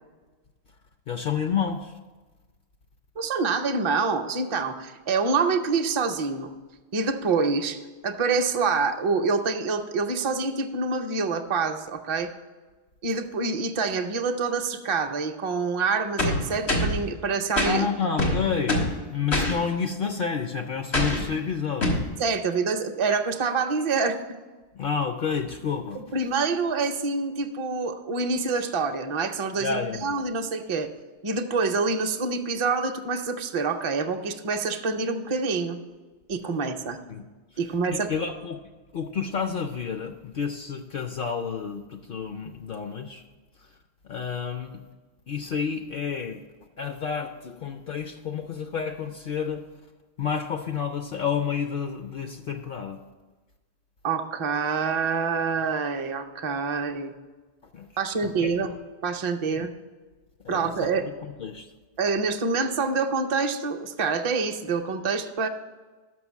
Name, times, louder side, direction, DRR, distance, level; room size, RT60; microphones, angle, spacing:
voice 1, 1.1-1.9 17.7-22.0 24.7-26.2 29.6-30.1 37.1-37.2 37.9-38.6 38.9-43.2 44.0-44.8 45.3-46.4 46.8-49.6 50.2-53.0 57.7-57.9 58.2-58.5 59.5-59.7 60.4-60.9 61.2-61.7, left 6 dB, 60° left, 6 dB, 0.7 m, -30 dB
voice 2, 3.2-6.5 6.9-12.3 13.0-17.9 22.2-24.2 25.9-30.9 31.2-35.8 36.3-37.0 37.6-38.1 54.0-57.1 58.0-58.7 59.0-59.7 60.5-61.1 62.0-65.5, right 4 dB, 40° right, 6 dB, 0.5 m, -26 dB
sound 1, 16.2-17.0 17.6-17.7 18.2-19.0 19.3-19.5 20.9-21.3 21.8-22.1, left 1 dB, 85° left, 1.8 m, -24 dB
6.2 x 5.9 x 7.1 m, 1.3 s
omnidirectional pair, 1.1 m